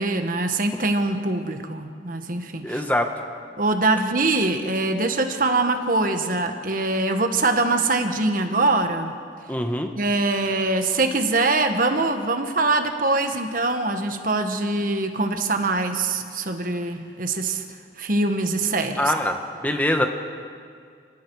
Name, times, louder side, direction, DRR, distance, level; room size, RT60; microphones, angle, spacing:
voice 1, 0.0-2.8 3.6-9.1 9.9-17.6 18.0-19.1, right 2 dB, 45° right, 6 dB, 1.4 m, -23 dB
voice 2, 2.6-3.1 9.5-9.9 19.0-19.4 19.6-20.1, left 1 dB, 10° left, 5 dB, 1.0 m, -23 dB
29.5 x 18.5 x 4.8 m, 2.2 s
head